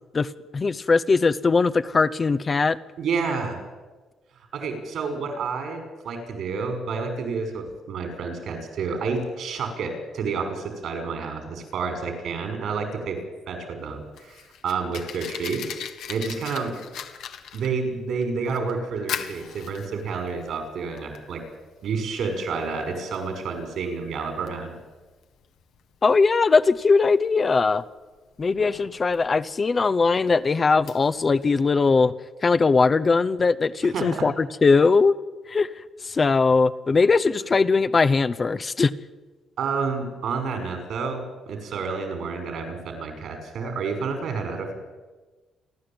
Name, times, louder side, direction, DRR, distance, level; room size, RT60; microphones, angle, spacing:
voice 1, 0.1-2.8 26.0-27.8 28.4-32.1 32.4-35.1 35.5-35.7 36.0-38.9, left 4 dB, 35° left, 11 dB, 0.8 m, -20 dB
voice 2, 3.0-3.6 4.5-13.2 13.5-16.8 17.5-21.4 21.8-24.8 33.9-34.2 39.6-44.7, right 5 dB, 70° right, 6 dB, 5.8 m, -29 dB
Fire, 13.8-31.5, left 9 dB, 80° left, 1.7 m, -41 dB
29.0 x 11.5 x 9.0 m, 1.3 s
cardioid pair, 90°, 0 cm